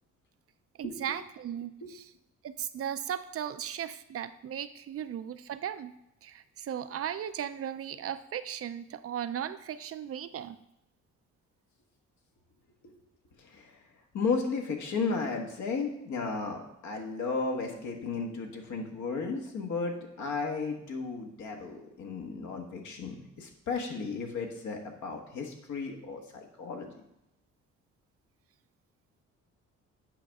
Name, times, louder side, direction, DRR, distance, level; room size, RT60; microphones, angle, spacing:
voice 1, 0.8-2.1 2.4-5.9 6.2-10.6, right 9 dB, 50° right, 12 dB, 0.5 m, -37 dB
voice 2, 13.4-13.8 14.1-26.9, left 4 dB, 70° left, 2 dB, 1.4 m, -34 dB
8.5 x 5.2 x 3.5 m, 0.84 s
cardioid pair, 90°, 30 cm